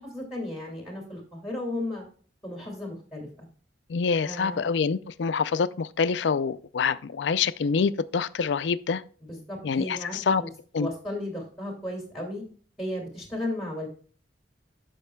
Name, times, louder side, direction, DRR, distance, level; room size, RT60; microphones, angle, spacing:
voice 1, 0.0-2.0 2.4-3.5 4.2-4.6 9.2-10.5 10.8-12.4 12.8-13.9, left 1 dB, ahead, 2.1 m, -35 dB
voice 2, 3.9-9.0 9.6-10.4 10.7-10.9, left 5 dB, 75° left, 0.4 m, -26 dB
13.5 x 5.3 x 2.2 m
head